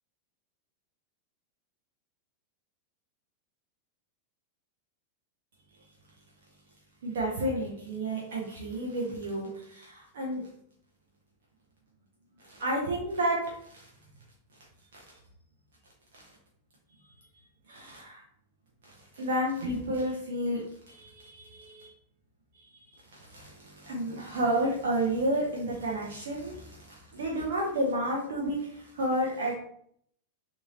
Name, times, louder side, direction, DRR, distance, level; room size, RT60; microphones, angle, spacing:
voice 1, 7.0-10.4 12.4-13.9 14.9-15.0 17.7-18.2 19.1-20.6 20.9-21.9 22.5-22.8 23.3-29.5, right 1 dB, 60° right, -3 dB, 0.6 m, -31 dB
2.8 x 2.6 x 2.7 m, 0.67 s
figure-of-eight pair, 90°, 0 cm